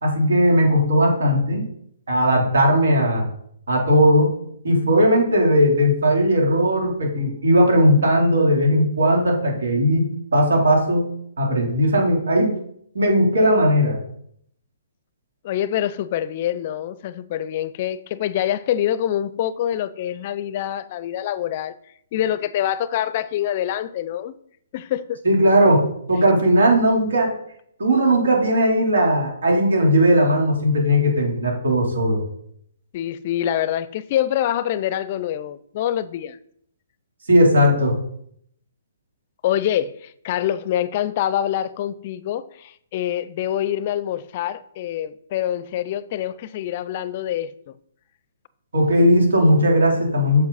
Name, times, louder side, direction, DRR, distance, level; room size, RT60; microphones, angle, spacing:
voice 1, 0.0-1.7 2.1-3.3 3.7-4.3 4.6-11.1 11.4-12.5 12.9-14.0 25.2-27.3 27.8-32.2 37.3-38.0 48.7-50.4, equal, 80° right, 3.4 m, -17 dB
voice 2, 15.4-21.8 22.1-24.4 24.7-25.2 32.9-36.4 39.4-47.7, left 11 dB, 45° left, 0.5 m, -25 dB
7.6 x 7.2 x 4.1 m
hypercardioid pair, 140°, 0 cm